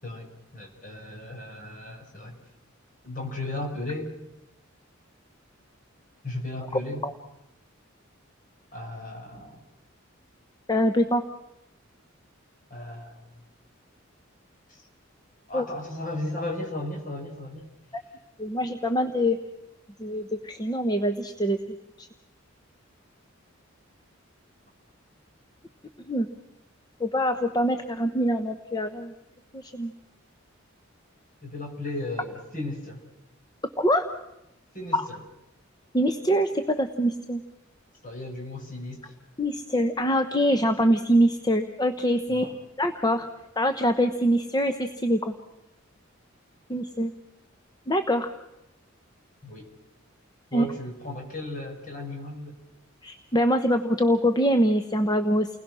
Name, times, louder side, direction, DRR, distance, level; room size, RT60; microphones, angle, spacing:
voice 1, 0.0-2.3 3.0-4.1 6.2-7.0 8.7-9.6 12.7-13.2 14.7-14.8 15.5-17.7 31.4-33.0 34.7-35.2 38.0-39.1 42.3-42.5 49.4-49.7 50.5-52.5, left 1 dB, 40° left, 1 dB, 5.6 m, -35 dB
voice 2, 10.7-11.2 15.5-15.6 18.4-19.4 20.0-21.6 22.0-22.1 26.1-26.3 27.0-29.1 29.5-29.9 33.8-34.1 34.9-35.0 35.9-37.4 39.4-42.5 42.8-43.3 43.6-45.3 46.7-47.1 47.9-48.3 50.5-50.7 53.0-55.5, equal, 20° left, 7 dB, 1.0 m, -24 dB
30.0 x 20.5 x 6.3 m, 0.89 s
head